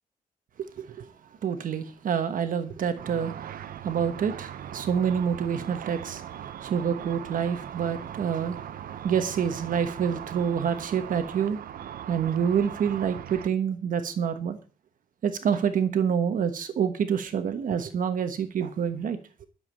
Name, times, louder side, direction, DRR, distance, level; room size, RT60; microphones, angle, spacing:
voice 1, 1.4-3.3 3.8-8.6 9.0-11.6 12.1-14.6 15.2-19.5, right 7 dB, 70° right, 1.2 m, -27 dB
Car / Traffic noise roadway noise / Engine, 3.0-13.5, right 10 dB, 90° right, 0.7 m, -39 dB
11.5 x 7.3 x 7.4 m
wide cardioid pair, 165°, 15 cm